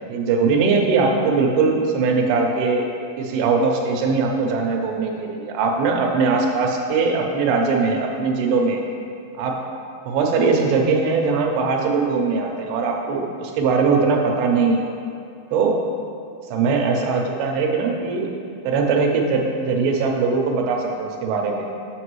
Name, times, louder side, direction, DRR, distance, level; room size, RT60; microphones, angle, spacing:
voice 1, 0.1-2.9 3.2-8.8 9.4-9.6 10.1-14.8 15.5-15.8 16.5-18.3 18.6-21.6, right 4 dB, 90° right, 2 dB, 2.7 m, -20 dB
8.2 x 6.7 x 3.1 m, 2.6 s
omnidirectional pair, 4.3 m